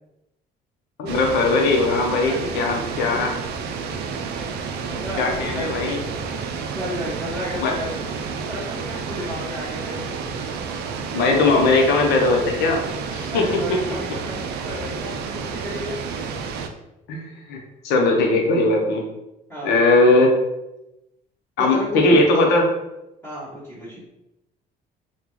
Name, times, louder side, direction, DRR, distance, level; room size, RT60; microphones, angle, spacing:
voice 1, 1.0-3.3 5.2-6.0 7.6-7.7 11.1-12.8 13.1-13.8 17.1-17.6 17.8-19.0 19.6-20.4 21.6-22.7, left 2 dB, 85° left, 1 dB, 0.7 m, -19 dB
sound 1, 1.1-16.7, right 5 dB, 75° right, 0.4 m, -30 dB
voice 2, 4.9-5.8 6.7-8.0 8.5-10.0 13.3-16.0 19.5-19.8 21.6-22.1 22.3-22.4 23.2-24.0, equal, 10° left, -10 dB, 1.1 m, -33 dB
3.7 x 2.3 x 3.0 m, 0.92 s
cardioid pair, 110°, 17 cm